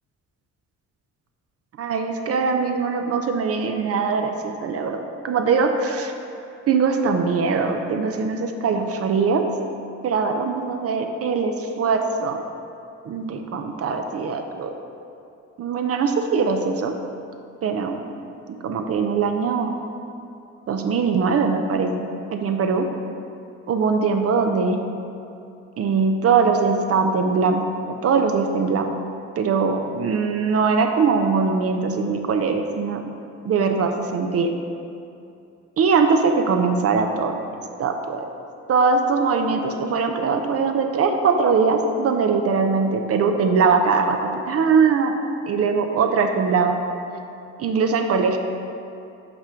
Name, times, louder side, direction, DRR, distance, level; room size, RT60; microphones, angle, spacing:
voice 1, 1.8-6.1 6.7-9.4 10.0-12.4 13.1-14.7 15.6-16.9 17.6-18.0 18.6-19.7 20.7-22.9 23.7-24.8 25.8-27.6 28.0-28.9 29.4-33.0 33.4-34.5 35.8-37.4 37.8-38.2 38.7-45.1 45.5-46.8 47.6-48.4, right 5 dB, 50° right, 5 dB, 0.5 m, -21 dB
5.7 x 3.7 x 5.6 m, 2.6 s
cardioid pair, 90°, 30 cm